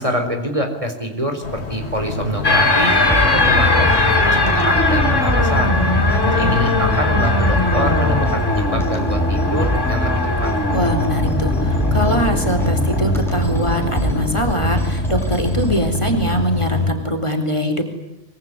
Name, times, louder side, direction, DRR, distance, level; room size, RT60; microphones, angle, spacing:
voice 1, 0.0-5.7 6.2-10.5, equal, 25° right, 5 dB, 4.3 m, -25 dB
sound 1, 1.4-16.9, left 1 dB, 60° left, 3.3 m, -27 dB
sound 2, 2.4-16.4, left 2 dB, 85° left, 4.1 m, -21 dB
sound 3, 2.9-15.8, equal, ahead, 6.3 m, -23 dB
voice 2, 10.7-17.8, equal, 25° left, 5 dB, 4.1 m, -22 dB
24.5 x 23.5 x 9.8 m, 0.92 s
omnidirectional pair, 1.2 m